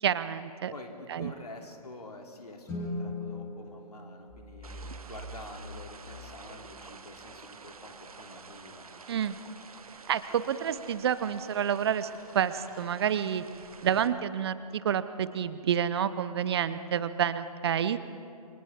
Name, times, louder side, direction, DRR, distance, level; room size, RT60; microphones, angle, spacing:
voice 1, 0.0-0.7 1.1-1.3 9.1-9.4 10.1-13.4 13.8-18.0, right 8 dB, 40° right, 14 dB, 0.8 m, -29 dB
voice 2, 0.7-8.9, left 2 dB, 75° left, 1 dB, 3.2 m, -47 dB
Guitar, 2.6-5.2, left 2 dB, 15° left, 4.0 m, -39 dB
sound 1, 4.3-7.2, right 1 dB, 30° left, 4.3 m, -46 dB
sound 2, 4.6-14.1, right 4 dB, 65° right, 1.2 m, -49 dB
29.5 x 24.5 x 3.7 m, 2.5 s
figure-of-eight pair, 130°, 20 cm